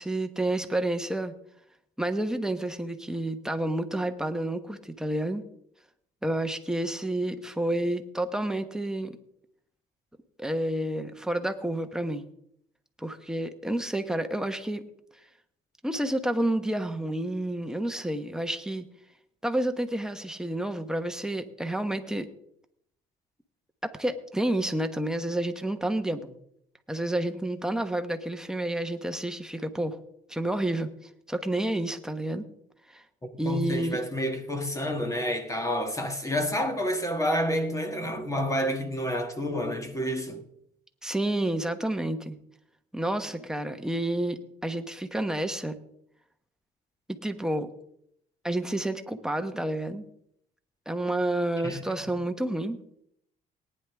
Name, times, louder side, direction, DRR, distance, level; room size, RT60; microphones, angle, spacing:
voice 1, 0.0-1.3 2.0-5.4 6.2-9.2 10.4-12.3 13.0-14.8 15.8-18.9 19.4-22.3 23.8-26.4 26.9-30.0 30.3-30.9 31.3-32.4 32.9-33.0 33.4-34.0 41.0-42.4 42.9-45.8 47.2-47.7 48.4-50.1 50.9-52.8, right 1 dB, 5° right, 1.1 m, -29 dB
voice 2, 33.4-40.4 51.6-52.1, equal, 20° left, 1.5 m, -29 dB
18.5 x 10.0 x 3.5 m
cardioid pair, 110°, 17 cm